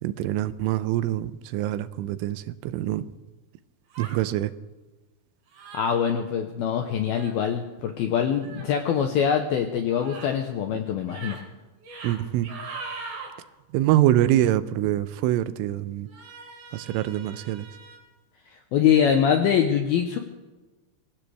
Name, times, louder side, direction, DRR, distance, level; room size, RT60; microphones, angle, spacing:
voice 1, 0.0-3.1 4.0-4.5 12.0-12.5 13.7-16.1 16.7-17.7, right 13 dB, 85° right, 14 dB, 3.2 m, -25 dB
sound 1, 3.9-4.2 5.5-5.9 7.1-7.4 8.4-8.7 9.9-10.3 11.0-11.4 11.8-12.2 12.4-13.3 16.1-18.0, right 4 dB, 55° right, 5.5 m, -40 dB
voice 2, 5.7-11.4 18.7-20.2, left 8 dB, 80° left, 5 dB, 2.2 m, -23 dB
24.0 x 16.5 x 3.4 m, 1.2 s
omnidirectional pair, 5.6 m